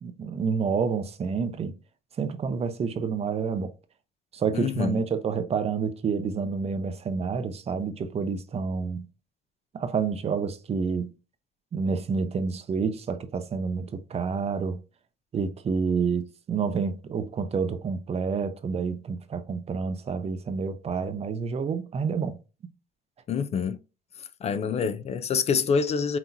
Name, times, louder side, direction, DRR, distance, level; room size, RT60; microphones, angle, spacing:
voice 1, 0.0-1.7 2.2-3.7 4.3-9.1 9.7-11.1 11.7-14.8 15.3-22.4, right 5 dB, 35° right, 0.7 m, -28 dB
voice 2, 4.5-5.0 23.3-23.8 24.4-26.2, left 6 dB, 40° left, 0.4 m, -26 dB
5.8 x 2.9 x 2.6 m
cardioid pair, 110°, 17 cm